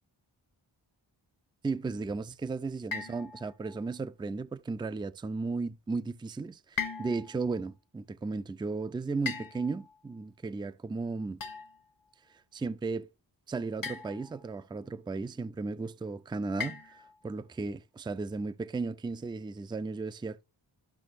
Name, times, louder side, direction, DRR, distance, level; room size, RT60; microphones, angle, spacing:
voice 1, 1.6-11.4 12.5-13.1 13.5-16.8 17.2-20.4, right 3 dB, 10° right, 0.4 m, -35 dB
sound 1, 2.9-3.8 6.8-7.5 9.3-10.0 11.4-11.9 13.8-14.5 16.6-17.3, left 6 dB, 45° left, 0.8 m, -39 dB
13.0 x 5.8 x 2.5 m
cardioid pair, 65°, 46 cm